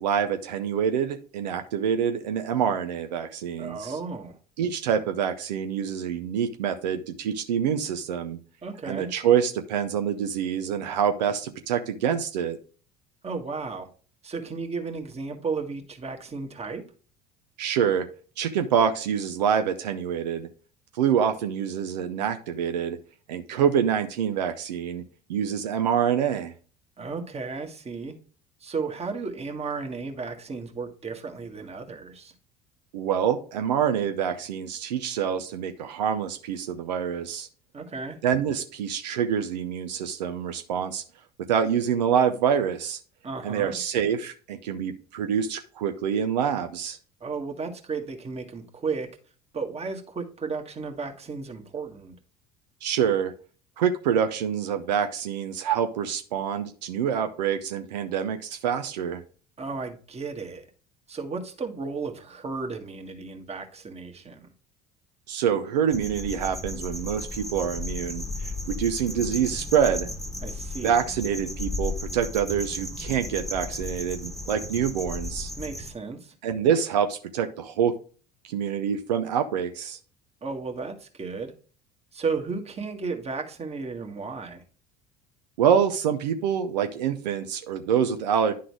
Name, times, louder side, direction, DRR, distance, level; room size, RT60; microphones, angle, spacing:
voice 1, 0.0-4.0 4.6-8.4 8.9-12.6 17.6-18.1 18.4-20.5 20.9-23.0 23.3-25.0 25.3-26.5 32.9-37.5 38.2-41.0 41.5-43.0 43.4-47.0 52.8-53.3 53.8-59.2 65.3-70.1 70.8-75.5 76.4-77.9 78.4-80.0 85.6-88.5, right 8 dB, 85° right, 7 dB, 0.6 m, -26 dB
voice 2, 3.6-4.4 8.6-9.1 13.2-13.9 14.2-16.8 27.0-28.2 28.6-32.3 37.7-38.2 43.2-43.8 47.2-49.1 49.5-52.2 59.6-60.7 61.1-64.5 70.4-70.9 75.6-76.3 80.4-81.5 82.1-84.6, right 4 dB, 30° right, 5 dB, 1.6 m, -34 dB
sound 1, 65.9-75.9, left 2 dB, ahead, 1.2 m, -34 dB
10.0 x 3.8 x 4.7 m, 0.40 s
hypercardioid pair, 70°, 21 cm